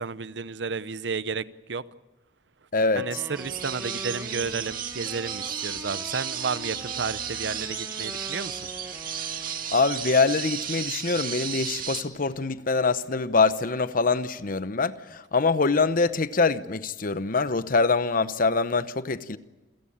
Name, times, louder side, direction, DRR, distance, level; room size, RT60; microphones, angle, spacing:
voice 1, 0.0-1.8 2.9-8.7, right 5 dB, 70° right, 0.7 m, -32 dB
voice 2, 2.7-3.2 9.7-19.4, left 4 dB, 50° left, 0.9 m, -24 dB
Wind instrument woodwind instrument, 2.9-9.9, right 1 dB, 15° right, 1.1 m, -43 dB
sound 1, 3.3-12.0, right 8 dB, 50° right, 2.1 m, -34 dB
28.0 x 16.0 x 8.7 m
head